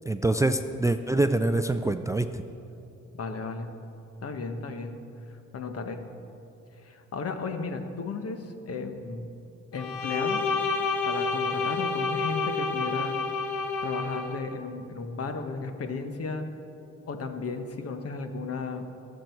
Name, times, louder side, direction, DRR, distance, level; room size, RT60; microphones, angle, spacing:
voice 1, 0.1-2.4, right 2 dB, 10° right, 9 dB, 0.4 m, -25 dB
voice 2, 3.1-3.7 4.2-5.0 5.5-6.0 6.8-9.3 9.7-10.5 11.0-13.2 13.8-16.5 17.1-18.9, left 4 dB, 50° left, 7 dB, 1.3 m, -34 dB
Bowed string instrument, 9.7-14.4, left 4 dB, 80° left, 1.2 m, -29 dB
21.5 x 7.7 x 4.6 m, 2.8 s
cardioid pair, 90°, 30 cm